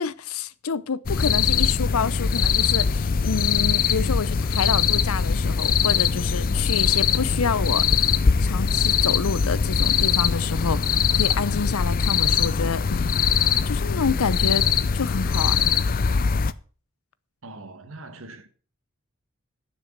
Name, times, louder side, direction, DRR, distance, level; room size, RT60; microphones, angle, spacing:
voice 1, 0.0-8.1 8.4-13.1 13.7-15.6, left 5 dB, 80° left, 0.6 m, -28 dB
sound 1, 1.1-16.5, left 6 dB, 40° left, 0.4 m, -22 dB
voice 2, 17.4-18.5, right 2 dB, 70° right, 1.7 m, -41 dB
10.5 x 6.3 x 7.3 m
head